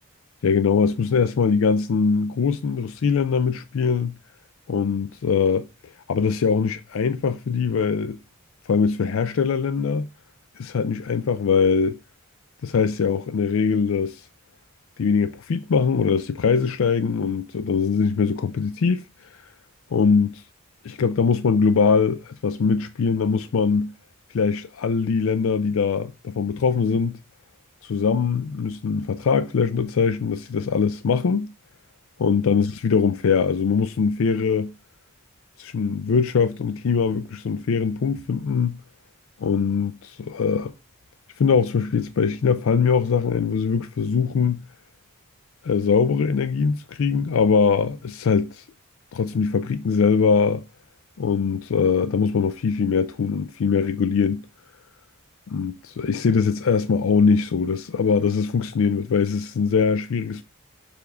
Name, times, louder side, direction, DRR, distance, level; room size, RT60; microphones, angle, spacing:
voice 1, 0.4-4.1 4.7-5.7 6.1-8.2 8.7-10.1 10.6-12.0 12.6-14.3 15.0-19.5 19.9-20.4 20.8-23.9 24.3-27.2 27.8-31.5 32.2-34.7 35.6-38.8 39.4-40.7 41.4-44.6 45.6-48.6 49.1-50.6 51.2-54.4 55.5-60.4, left 5 dB, 65° left, 0.4 m, -22 dB
7.0 x 3.5 x 4.8 m
head